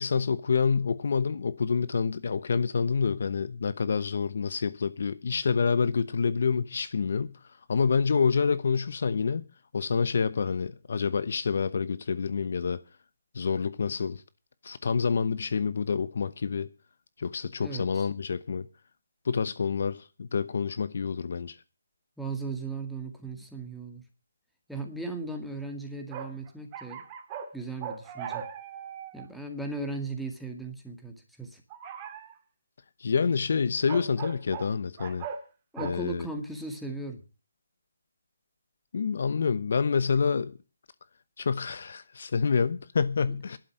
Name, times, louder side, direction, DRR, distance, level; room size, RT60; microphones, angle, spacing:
voice 1, 0.0-7.3 7.7-9.4 9.7-12.8 13.3-14.2 14.6-16.7 17.2-18.7 19.2-21.5 33.0-35.3 35.8-36.3 38.9-40.5 41.4-43.6, left 5 dB, 60° left, 0.9 m, -27 dB
voice 2, 17.6-18.1 22.2-24.0 24.7-27.0 27.5-28.5 29.1-31.6 35.7-37.2 43.3-43.6, right 3 dB, ahead, 2.0 m, -37 dB
sound 1, 26.1-27.5 27.8-29.3 31.7-32.3 33.9-34.7 35.0-35.4 35.8-35.9, right 8 dB, 25° right, 2.0 m, -39 dB
11.5 x 9.6 x 7.8 m
hypercardioid pair, 155°, 0 cm